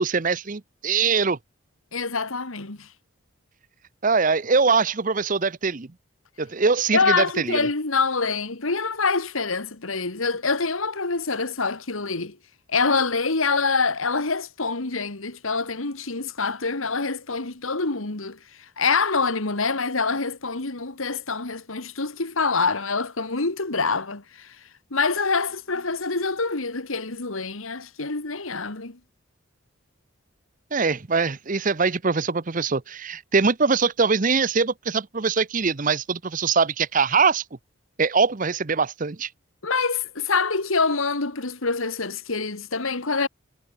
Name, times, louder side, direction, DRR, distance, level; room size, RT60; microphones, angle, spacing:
voice 1, 0.0-1.4 4.0-5.9 6.4-7.7 30.7-37.4 38.0-39.3, right 4 dB, 40° right, 0.7 m, -22 dB
voice 2, 1.9-2.9 6.9-12.4 12.7-18.4 18.8-24.6 24.9-29.0 39.6-43.3, left 4 dB, 75° left, 2.1 m, -25 dB
head